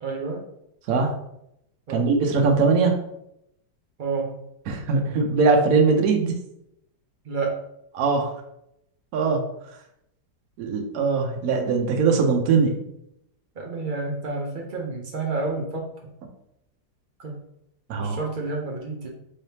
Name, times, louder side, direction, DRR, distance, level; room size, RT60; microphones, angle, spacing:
voice 1, 0.0-0.4 1.9-2.1 4.0-4.3 7.2-7.5 13.6-15.9 17.2-17.4 18.0-19.1, right 3 dB, 85° right, -1 dB, 0.4 m, -29 dB
voice 2, 1.9-3.0 4.7-6.3 7.9-8.3 9.1-9.4 10.6-12.8 17.9-18.2, right 4 dB, 65° right, 2 dB, 1.0 m, -21 dB
3.8 x 3.4 x 2.8 m, 0.78 s
omnidirectional pair, 1.8 m